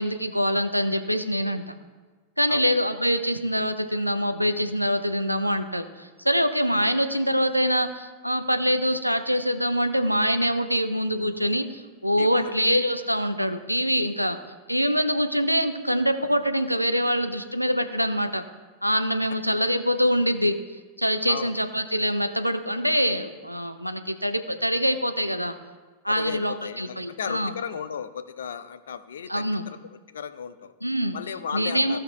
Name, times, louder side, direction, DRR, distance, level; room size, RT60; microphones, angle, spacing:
voice 1, 0.0-1.7 2.4-14.4 14.7-18.4 18.8-20.6 21.0-25.5 26.0-27.5 29.3-29.6 30.8-31.2 31.5-32.0, equal, 90° right, 8 dB, 0.6 m, -24 dB
voice 2, 12.2-12.5 14.2-14.3 21.3-21.6 26.1-29.8 30.1-30.7 31.1-32.0, left 7 dB, 65° left, 11 dB, 0.5 m, -35 dB
15.0 x 5.8 x 3.2 m, 1.4 s
figure-of-eight pair, 90°, 0 cm